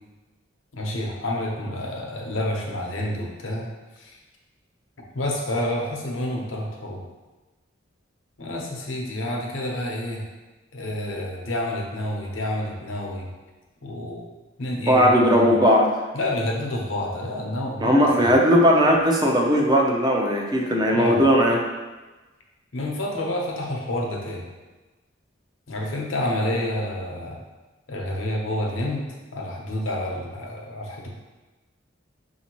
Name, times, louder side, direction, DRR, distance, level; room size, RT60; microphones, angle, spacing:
voice 1, 0.7-3.7 4.0-4.2 5.1-7.0 8.4-10.2 10.7-13.3 13.8-14.2 14.6-15.6 16.1-18.3 20.9-21.2 22.7-24.4 25.7-27.4 27.9-29.0 29.3-31.1, left 1 dB, 80° left, 0 dB, 0.8 m, -29 dB
voice 2, 14.9-15.9 17.8-21.6, equal, 20° right, 0 dB, 0.6 m, -18 dB
6.2 x 2.8 x 3.0 m, 1.2 s
head